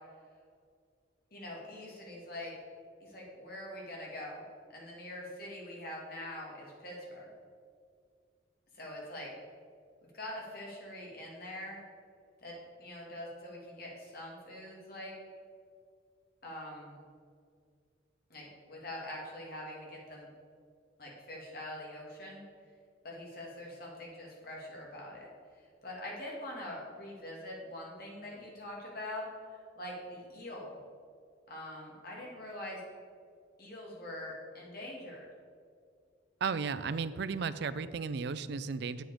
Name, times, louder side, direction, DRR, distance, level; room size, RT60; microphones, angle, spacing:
voice 1, 1.3-2.5 3.0-4.4 4.7-7.3 8.7-9.3 10.1-11.8 12.4-15.1 16.4-17.0 18.3-20.3 21.0-22.4 23.0-25.3 25.8-30.8 31.5-32.8 33.6-35.3, left 1 dB, 50° left, -3 dB, 2.2 m, -44 dB
voice 2, 36.4-39.0, right 5 dB, 60° right, 14 dB, 0.4 m, -34 dB
8.2 x 7.8 x 4.9 m, 2.2 s
head